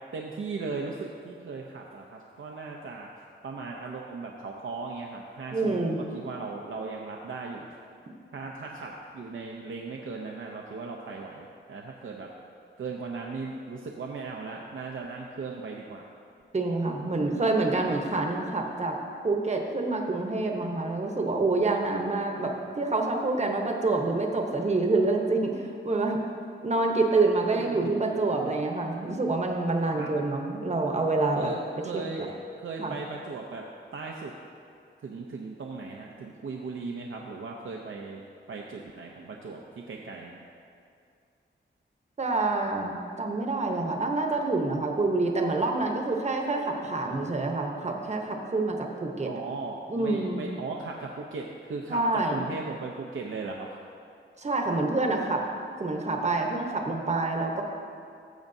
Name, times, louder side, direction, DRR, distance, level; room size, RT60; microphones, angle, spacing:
voice 1, 0.1-3.1 3.4-7.7 8.3-12.3 12.8-16.1 27.6-28.6 30.0-30.1 31.3-33.6 33.9-34.3 35.0-38.2 38.5-39.6 39.9-40.4 49.3-53.7, right 4 dB, 80° right, 0 dB, 0.6 m, -37 dB
voice 2, 5.5-6.0 16.5-19.0 19.2-26.2 26.6-31.5 32.8-32.9 42.2-49.3 49.9-50.4 51.9-52.5 54.4-55.4 55.8-57.6, right 3 dB, 35° right, 2 dB, 0.9 m, -27 dB
14.0 x 7.1 x 2.7 m, 2.4 s
wide cardioid pair, 100°, 20 cm